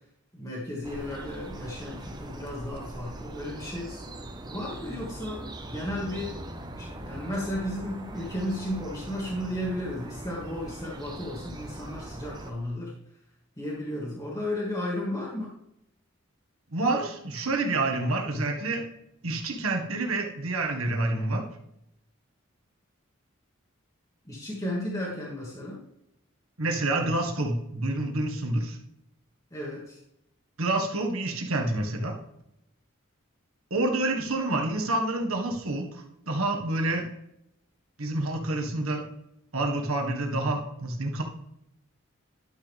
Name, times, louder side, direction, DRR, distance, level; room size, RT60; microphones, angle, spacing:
voice 1, 0.3-4.0 4.5-6.4 6.8-12.9 13.6-15.5 24.3-25.8 29.5-30.0, left 1 dB, 15° left, -5 dB, 1.7 m, -34 dB
sound 1, 0.8-12.5, right 1 dB, 20° right, 0.8 m, -41 dB
voice 2, 16.7-18.8 19.2-21.4 26.6-28.8 30.6-32.2 33.7-37.1 38.0-39.0 39.5-41.2, right 2 dB, 85° right, 3 dB, 1.7 m, -28 dB
11.5 x 6.3 x 3.5 m, 0.79 s
head